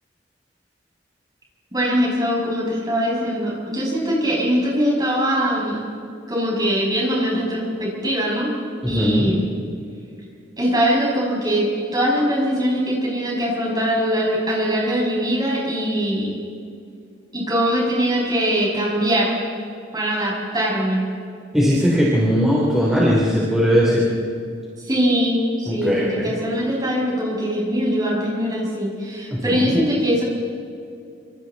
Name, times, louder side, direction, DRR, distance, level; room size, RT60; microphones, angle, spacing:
voice 1, 1.7-5.9 6.3-8.5 8.9-9.5 10.6-11.6 11.9-16.4 17.3-19.3 19.9-21.0 24.8-30.2, equal, 20° right, -4 dB, 6.6 m, -22 dB
voice 2, 8.9-9.4 21.5-24.1 25.7-26.3 29.3-29.8, equal, 5° right, -6 dB, 3.5 m, -19 dB
27.5 x 26.0 x 4.2 m, 2.4 s
head